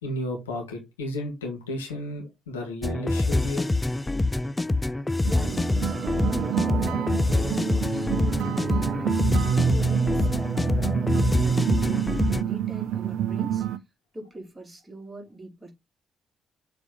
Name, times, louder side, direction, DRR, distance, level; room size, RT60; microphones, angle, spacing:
voice 1, 0.0-3.7, left 1 dB, 80° left, 2.1 m, -33 dB
sound 1, 2.8-12.4, left 2 dB, 15° left, 0.4 m, -25 dB
voice 2, 5.2-10.8 11.3-13.7 14.1-15.7, right 1 dB, 20° right, 3.9 m, -42 dB
sound 2, 5.2-13.8, right 8 dB, 60° right, 0.6 m, -27 dB
7.0 x 4.4 x 3.9 m
figure-of-eight pair, 45°, 0 cm